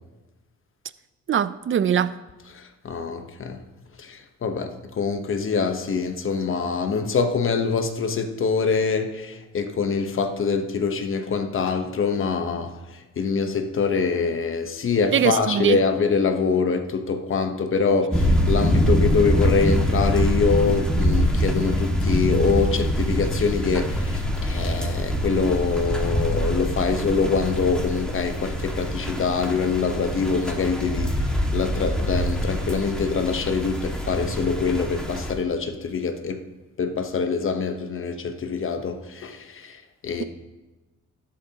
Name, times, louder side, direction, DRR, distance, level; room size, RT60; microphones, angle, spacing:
voice 1, 1.3-2.1 15.1-15.8, right 8 dB, 40° right, 0.5 m, -21 dB
voice 2, 2.5-3.6 4.0-12.7 13.2-31.2 31.5-36.4 36.8-39.8 40.0-40.2, left 5 dB, 45° left, 1.1 m, -24 dB
sound 1, 18.1-35.3, equal, 5° left, 1.9 m, -24 dB
12.5 x 11.5 x 2.9 m
cardioid pair, 90°, 30 cm